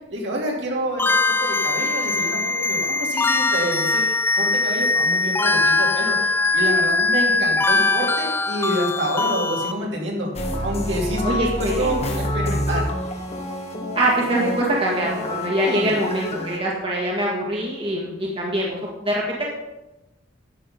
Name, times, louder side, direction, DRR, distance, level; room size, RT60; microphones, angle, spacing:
voice 1, 0.1-4.0 4.4-6.2 6.5-10.3 10.6-12.9 15.6-15.9, right 1 dB, 65° right, -2 dB, 2.8 m, -27 dB
sound 1, 1.0-9.7, left 3 dB, 10° left, 0.4 m, -21 dB
sound 2, 10.4-16.6, left 1 dB, 35° left, 1.3 m, -28 dB
voice 2, 11.2-12.0 13.9-19.5, right 1 dB, 30° right, -3 dB, 1.7 m, -24 dB
11.0 x 7.7 x 5.3 m, 1.0 s
head